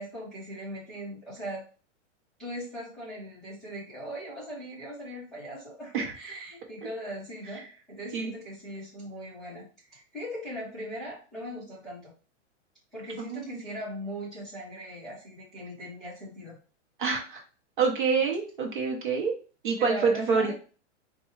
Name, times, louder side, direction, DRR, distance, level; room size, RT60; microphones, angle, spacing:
voice 1, 0.0-1.7 2.4-7.6 7.9-12.1 12.9-16.6 19.8-20.5, equal, ahead, -11 dB, 0.8 m, -39 dB
voice 2, 17.0-17.4 17.8-19.4 19.6-20.5, right 5 dB, 45° right, 1 dB, 0.8 m, -26 dB
4.3 x 2.3 x 3.1 m, 0.36 s
hypercardioid pair, 175°, 37 cm